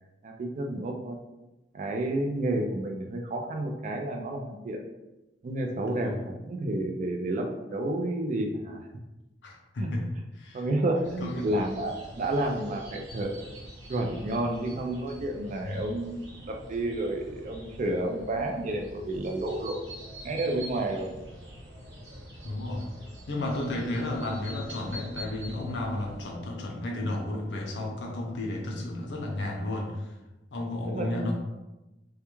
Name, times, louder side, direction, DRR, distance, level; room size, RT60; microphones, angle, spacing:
voice 1, 0.2-1.2 1.7-4.8 5.4-8.8 9.8-9.9 10.5-13.5 13.9-19.8 20.2-21.1 30.9-31.3, right 1 dB, 45° right, 2 dB, 0.3 m, -30 dB
voice 2, 9.4-10.0 10.3-10.7 11.2-11.5 15.6-15.8 22.4-22.9 23.3-30.1 30.5-31.4, left 1 dB, 75° left, 0 dB, 0.5 m, -33 dB
sound 1, 11.0-26.3, equal, 80° right, 0.9 m, -45 dB
2.3 x 2.2 x 3.0 m, 1.0 s
head